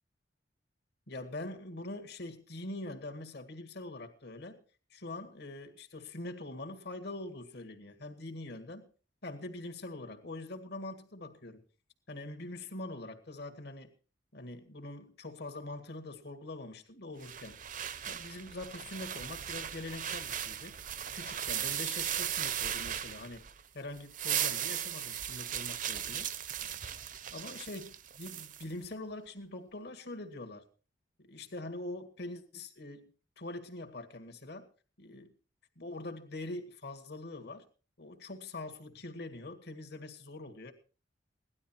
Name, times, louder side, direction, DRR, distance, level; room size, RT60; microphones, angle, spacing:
voice 1, 1.1-4.6 4.9-8.9 9.2-11.6 12.1-13.9 14.3-17.6 18.1-20.8 21.1-23.5 23.7-26.3 27.3-30.7 31.2-33.1 33.4-34.7 35.0-35.3 35.8-37.7 38.0-40.7, left 2 dB, 65° left, 2.0 m, -43 dB
sound 1, 17.2-23.6 24.0-28.6, right 10 dB, 45° right, 0.8 m, -37 dB
17.5 x 12.0 x 4.4 m
head